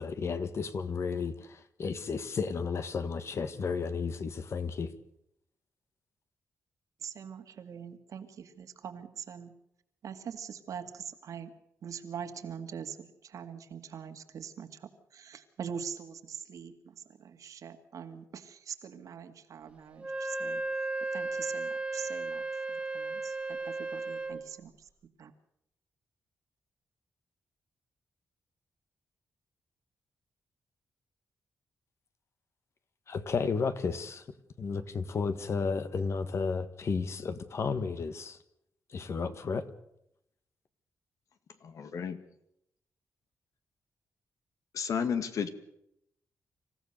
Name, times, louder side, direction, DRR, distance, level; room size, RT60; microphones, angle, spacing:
voice 1, 0.0-4.9 33.1-34.2 34.6-38.4 38.9-39.7, left 5 dB, 50° left, 1.7 m, -33 dB
voice 2, 7.0-9.5 10.0-11.5 11.8-14.7 15.1-20.6 21.1-22.4 22.7-24.7 25.2-25.3, right 7 dB, 70° right, 2.1 m, -43 dB
Wind instrument woodwind instrument, 20.0-24.5, right 3 dB, 20° right, 2.0 m, -35 dB
voice 3, 41.6-42.2 44.7-45.5, left 7 dB, 70° left, 2.0 m, -32 dB
26.5 x 15.5 x 6.7 m
wide cardioid pair, 120°, 6 cm